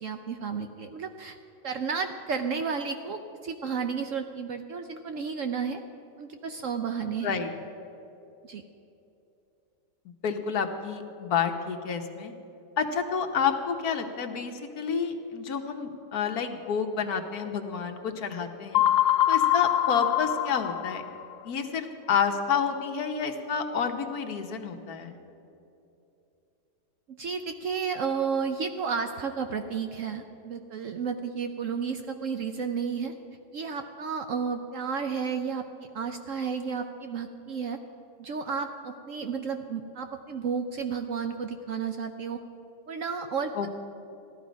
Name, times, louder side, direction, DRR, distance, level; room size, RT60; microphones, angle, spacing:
voice 1, 0.0-1.4 1.6-5.8 6.2-7.4 8.4-8.6 27.1-33.1 33.5-37.8 38.2-42.4 42.9-43.7, right 6 dB, 65° right, 6 dB, 0.8 m, -32 dB
voice 2, 10.2-12.3 12.8-18.8 19.3-21.0 21.4-25.2 43.5-43.7, left 6 dB, 65° left, 5 dB, 1.4 m, -29 dB
sound 1, 18.7-21.3, left 12 dB, 80° left, 1.2 m, -24 dB
15.0 x 12.5 x 5.1 m, 2.8 s
omnidirectional pair, 1.8 m